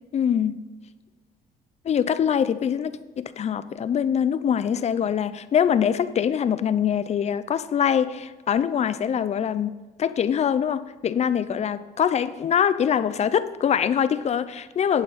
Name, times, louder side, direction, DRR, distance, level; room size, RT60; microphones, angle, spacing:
voice 1, 0.1-0.6 1.8-9.7 10.0-15.0, left 8 dB, 40° left, 15 dB, 0.6 m, -23 dB
11.0 x 8.6 x 4.2 m, 1.3 s
cardioid pair, 110°, 17 cm